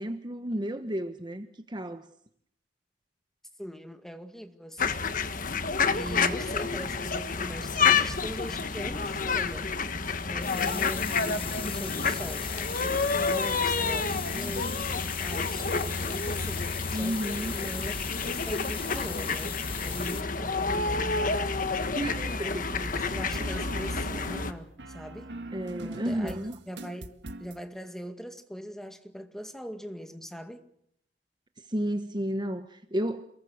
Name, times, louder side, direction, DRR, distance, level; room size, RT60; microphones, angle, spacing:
voice 1, 0.0-2.1 16.9-17.5 21.9-22.6 25.5-26.6 31.6-33.3, right 1 dB, 25° right, 1.1 m, -32 dB
voice 2, 3.6-5.0 5.9-9.7 10.3-17.9 18.2-21.6 22.3-25.4 25.7-26.4 26.7-27.1 27.4-30.7, equal, 5° left, 2.2 m, -41 dB
sound 1, 4.8-24.5, left 4 dB, 50° left, 1.5 m, -29 dB
sound 2, 10.4-20.2, left 9 dB, 30° left, 1.1 m, -39 dB
sound 3, 22.7-27.6, right 2 dB, 85° right, 1.8 m, -41 dB
28.5 x 22.0 x 6.5 m
head